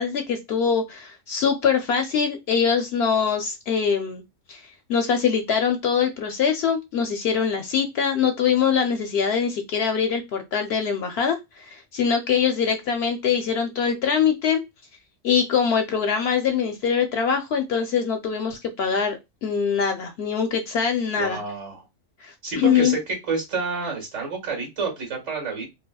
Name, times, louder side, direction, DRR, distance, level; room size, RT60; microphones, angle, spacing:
voice 1, 0.0-4.2 4.5-4.6 4.9-14.6 15.2-21.4 22.2-23.0, left 7 dB, 65° left, 6 dB, 0.7 m, -23 dB
voice 2, 21.1-21.9 22.4-25.7, right 4 dB, 75° right, 1 dB, 2.0 m, -29 dB
4.1 x 2.2 x 2.2 m, 0.21 s
omnidirectional pair, 1.3 m